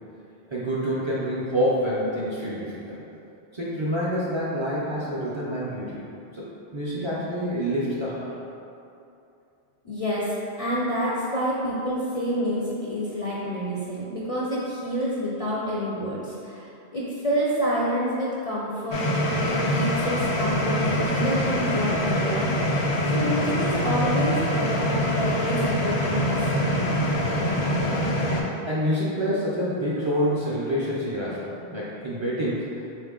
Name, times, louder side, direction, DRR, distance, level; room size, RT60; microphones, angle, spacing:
voice 1, 0.5-3.0 3.5-6.0 6.3-6.5 6.7-8.3 23.2-23.4 27.7-28.1 28.7-32.7, equal, 35° right, -8 dB, 0.5 m, -27 dB
voice 2, 9.8-22.5 23.1-26.4, equal, 50° left, -6 dB, 0.4 m, -28 dB
sound 1, 18.9-28.4, equal, 85° left, 0.9 m, -24 dB
4.0 x 2.5 x 3.6 m, 2.7 s
omnidirectional pair, 1.1 m